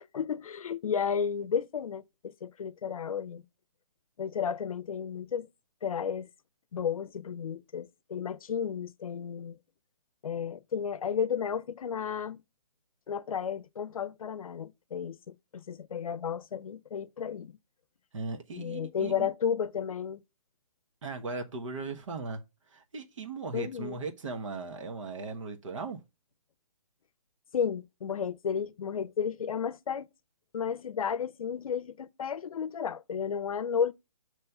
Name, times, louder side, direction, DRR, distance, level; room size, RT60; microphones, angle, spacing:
voice 1, 0.0-3.4 4.2-5.5 5.8-6.3 6.7-9.6 10.2-12.4 13.1-17.5 18.6-20.2 23.5-24.0 27.5-30.1 30.5-33.9, left 7 dB, 80° left, 0.6 m, -33 dB
voice 2, 18.1-19.3 21.0-26.0, right 3 dB, 60° right, 1.2 m, -38 dB
6.7 x 3.1 x 5.8 m
hypercardioid pair, 165°, 18 cm